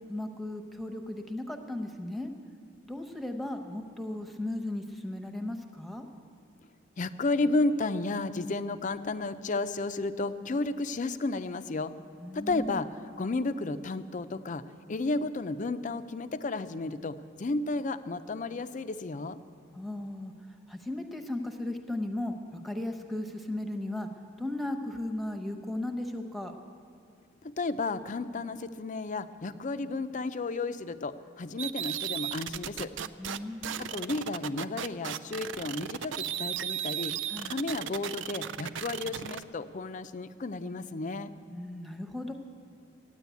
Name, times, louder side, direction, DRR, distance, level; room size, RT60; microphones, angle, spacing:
voice 1, 0.1-2.3 2.9-6.1 12.2-12.8 19.7-20.3 20.7-22.3 22.6-24.1 24.4-26.5 33.2-33.9 37.3-37.5 41.5-42.3, left 1 dB, ahead, 5 dB, 1.0 m, -36 dB
voice 2, 7.0-11.9 12.3-12.9 13.2-14.6 14.9-19.4 27.4-32.9 33.8-37.1 37.5-41.3, left 3 dB, 40° left, 11 dB, 0.5 m, -32 dB
sound 1, 31.6-33.4 33.6-39.4, right 10 dB, 65° right, 0.4 m, -35 dB
14.0 x 9.9 x 8.3 m, 2.2 s
head